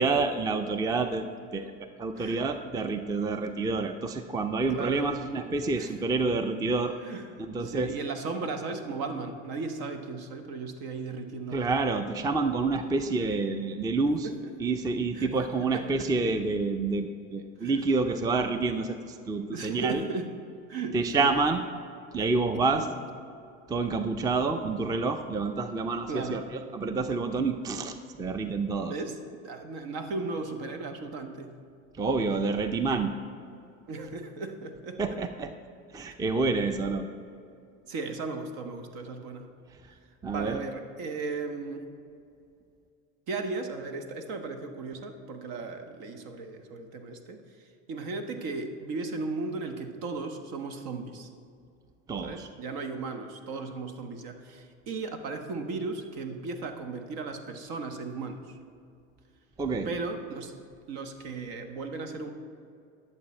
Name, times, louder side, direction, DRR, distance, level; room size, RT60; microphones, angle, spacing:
voice 1, 0.0-1.7 2.0-7.0 7.4-7.9 11.5-14.3 14.6-20.0 20.9-21.6 22.1-22.9 23.7-28.9 32.0-33.1 35.0-35.5 35.9-37.1 40.2-40.6 52.1-52.5 59.6-59.9, right 3 dB, 10° right, 9 dB, 0.4 m, -28 dB
voice 2, 4.7-5.2 5.8-6.0 7.0-7.3 7.6-11.9 14.2-14.5 15.1-16.1 17.6-17.8 19.5-20.3 20.7-21.3 22.7-22.9 26.1-26.5 28.9-29.2 29.4-31.5 33.9-35.0 37.9-39.5 40.3-41.9 43.3-51.3 52.2-58.4 59.8-60.5 60.9-62.3, right 3 dB, 65° right, 6 dB, 1.2 m, -36 dB
11.0 x 7.1 x 4.3 m, 2.4 s
hypercardioid pair, 90°, 39 cm